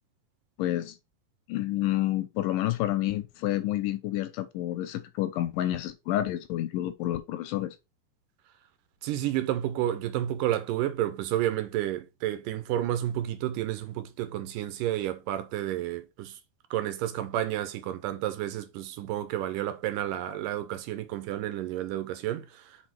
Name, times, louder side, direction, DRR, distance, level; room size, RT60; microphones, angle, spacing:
voice 1, 0.6-1.0 1.5-7.8, left 14 dB, 80° left, 2.1 m, -29 dB
voice 2, 9.0-16.4 16.7-22.8, right 12 dB, 80° right, 2.2 m, -31 dB
5.3 x 4.3 x 4.4 m
omnidirectional pair, 4.1 m